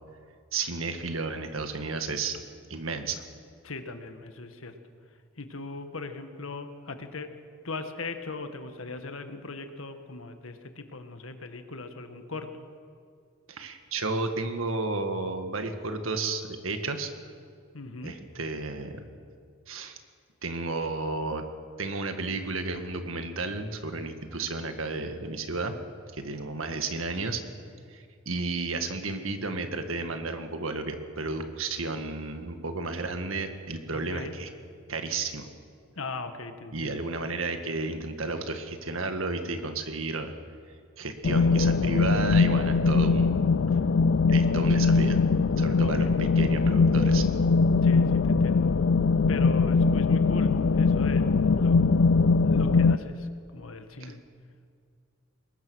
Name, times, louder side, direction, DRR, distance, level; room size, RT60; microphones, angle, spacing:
voice 1, 0.5-2.4 2.7-3.2 13.5-17.1 18.0-18.9 19.7-20.0 20.4-21.4 21.8-25.7 26.1-27.4 27.9-34.5 34.9-35.5 36.7-40.3 41.0-43.4 44.3-45.2 45.6-47.2 54.0-54.1, right 3 dB, 80° right, 7 dB, 1.7 m, -32 dB
voice 2, 3.6-4.8 5.4-7.3 7.6-12.7 17.7-18.2 29.5-29.8 33.9-34.4 35.9-37.0 45.8-46.2 47.8-48.7 49.3-51.8 52.5-54.2, left 3 dB, 85° left, 8 dB, 1.6 m, -39 dB
sound 1, 41.2-53.0, left 4 dB, 65° left, 0.5 m, -22 dB
21.5 x 21.0 x 6.3 m, 2.2 s
head